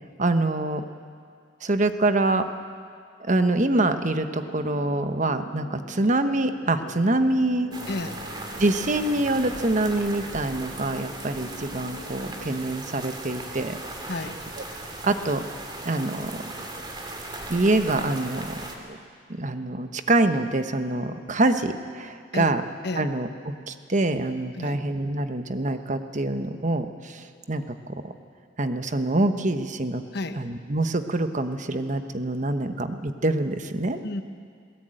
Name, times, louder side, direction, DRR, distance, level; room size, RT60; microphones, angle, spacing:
voice 1, 0.2-0.8 1.6-2.5 3.2-7.7 8.6-13.8 15.0-15.4 15.8-16.4 17.5-18.5 18.9-19.0 19.3-22.6 22.9-28.1 28.6-30.0 30.4-34.0, right 2 dB, 40° right, 8 dB, 1.1 m, -25 dB
sound 1, 4.3-12.6, equal, 75° left, 2.8 m, -44 dB
sound 2, 7.7-18.8, right 2 dB, 25° right, 2.5 m, -38 dB
voice 2, 7.9-8.2 14.1-14.4 22.3-22.5 22.8-23.1 24.6-24.8 30.1-30.4 33.9-34.2, left 2 dB, 60° left, 8 dB, 1.2 m, -31 dB
20.5 x 18.5 x 9.0 m, 2.2 s
head